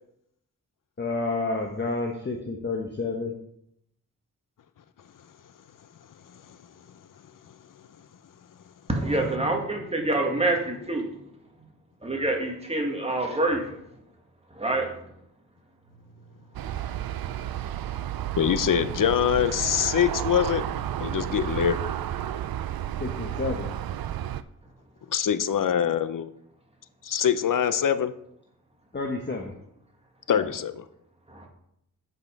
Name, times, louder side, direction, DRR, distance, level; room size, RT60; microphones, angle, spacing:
voice 1, 1.0-3.3 23.0-23.7 28.9-29.5 30.3-30.5, left 3 dB, 30° left, 1.1 m, -30 dB
voice 2, 8.9-11.1 12.0-13.8 14.5-14.9 16.6-16.7 17.6-17.7 31.3-31.5, right 2 dB, 20° right, 2.0 m, -26 dB
Aircraft, 16.5-24.4, right 11 dB, 90° right, 0.5 m, -32 dB
voice 3, 18.4-20.6 21.0-21.8 25.1-26.3 27.0-28.1 30.3-30.8, left 8 dB, 65° left, 0.7 m, -24 dB
8.4 x 5.5 x 5.3 m
wide cardioid pair, 80°, 34 cm